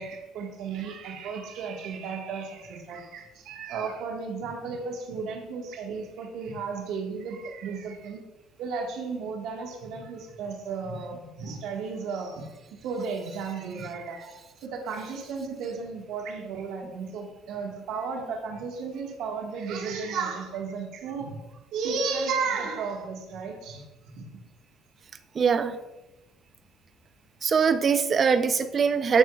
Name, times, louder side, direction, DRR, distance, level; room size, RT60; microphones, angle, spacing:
voice 1, 0.0-8.2 8.6-14.4 14.6-21.4 21.7-24.2, right 5 dB, 75° right, 1 dB, 1.5 m, -34 dB
voice 2, 25.4-25.8 27.4-29.2, right 6 dB, 40° right, 11 dB, 0.6 m, -22 dB
13.0 x 4.7 x 2.3 m, 1.0 s
supercardioid pair, 90°, 0 cm